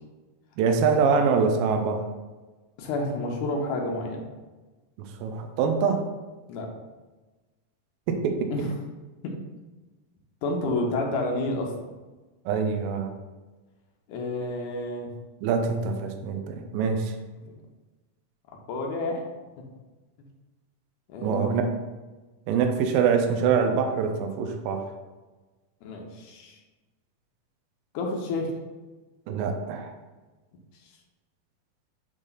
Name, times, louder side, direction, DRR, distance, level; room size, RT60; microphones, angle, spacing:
voice 1, 0.6-2.1 5.0-6.0 8.1-8.5 12.5-13.1 15.4-17.1 21.2-21.6 22.5-24.9 29.3-29.9, right 6 dB, 80° right, 5 dB, 2.3 m, -24 dB
voice 2, 2.8-4.2 6.5-6.7 8.5-8.7 9.2-9.4 10.4-11.7 14.1-15.1 17.5-17.6 18.7-19.3 21.1-21.7 25.8-26.6 27.9-28.5, left 2 dB, 70° left, 0 dB, 2.2 m, -29 dB
9.0 x 3.4 x 4.0 m, 1.2 s
omnidirectional pair, 4.2 m